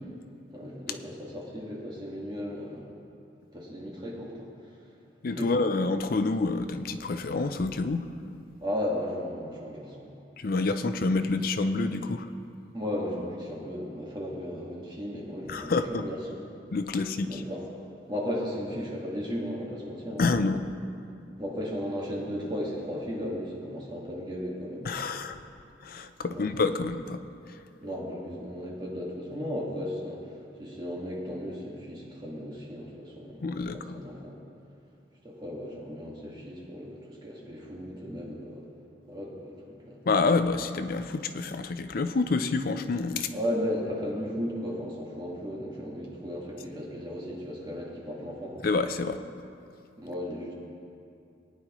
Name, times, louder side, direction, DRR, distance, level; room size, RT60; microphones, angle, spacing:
voice 1, 0.5-2.9 3.5-4.5 5.4-5.6 8.6-10.2 12.7-16.4 17.2-17.6 18.1-20.3 21.4-24.9 26.3-26.5 27.8-33.4 33.7-34.4 35.2-38.6 39.0-40.0 43.3-48.6 50.0-50.5, equal, 25° right, -3 dB, 1.7 m, -35 dB
voice 2, 5.2-8.1 10.4-12.3 15.5-16.0 16.7-17.4 20.2-20.7 24.8-25.4 25.8-27.2 33.4-34.0 40.1-43.3 48.6-49.2, left 3 dB, 55° left, 9 dB, 0.5 m, -28 dB
19.5 x 9.6 x 3.1 m, 2.5 s
head